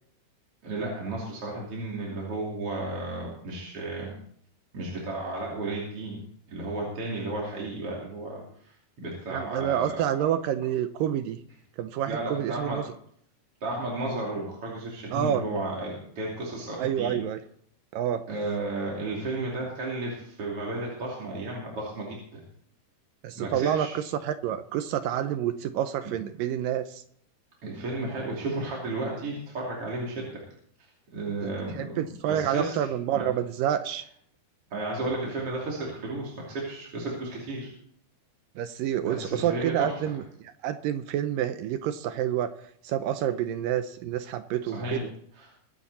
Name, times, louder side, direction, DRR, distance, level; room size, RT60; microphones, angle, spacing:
voice 1, 0.6-4.1 4.7-6.2 6.5-9.9 10.2-10.3 12.1-12.8 13.6-17.2 18.3-22.4 23.3-23.9 26.0-26.1 27.6-30.4 31.1-32.9 33.1-33.2 34.7-37.7 39.0-40.0 44.7-45.0 45.4-45.5, right 2 dB, 40° right, -3 dB, 3.3 m, -33 dB
voice 2, 9.3-11.4 11.8-12.8 15.1-15.4 16.8-17.4 17.9-18.3 23.2-27.0 31.7-34.1 38.6-40.2 40.6-42.5 42.8-45.1, right 10 dB, 80° right, 10 dB, 2.0 m, -28 dB
23.0 x 9.9 x 4.2 m, 0.65 s
omnidirectional pair, 4.7 m